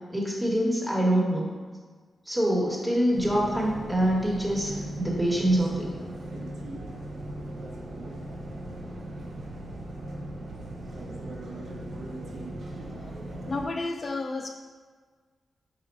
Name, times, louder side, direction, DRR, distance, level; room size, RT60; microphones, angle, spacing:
voice 1, 0.1-1.4 2.3-5.8, right 1 dB, 15° right, -3 dB, 1.2 m, -25 dB
sound 1, 3.1-13.7, right 1 dB, 70° right, 0.6 m, -38 dB
voice 2, 13.5-14.5, left 3 dB, 50° left, 3 dB, 0.3 m, -31 dB
4.1 x 2.4 x 4.5 m, 1.5 s
cardioid pair, 55°, 0 cm